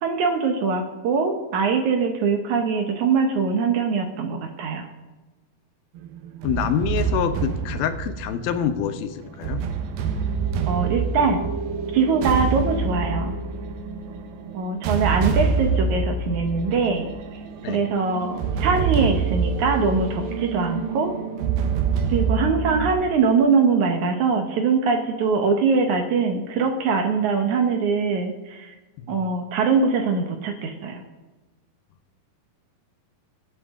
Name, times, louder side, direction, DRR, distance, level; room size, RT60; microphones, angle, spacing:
voice 1, 0.0-4.9 10.7-11.5 11.9-13.4 14.5-17.1 17.6-21.1 22.1-28.8 29.1-31.0, right 5 dB, 65° right, 5 dB, 2.1 m, -22 dB
sound 1, 6.0-22.9, right 5 dB, 80° right, 2.8 m, -26 dB
voice 2, 6.4-9.7 17.6-17.8 29.0-29.1, left 8 dB, 85° left, 8 dB, 2.8 m, -26 dB
23.5 x 8.2 x 3.7 m, 1.2 s
omnidirectional pair, 4.2 m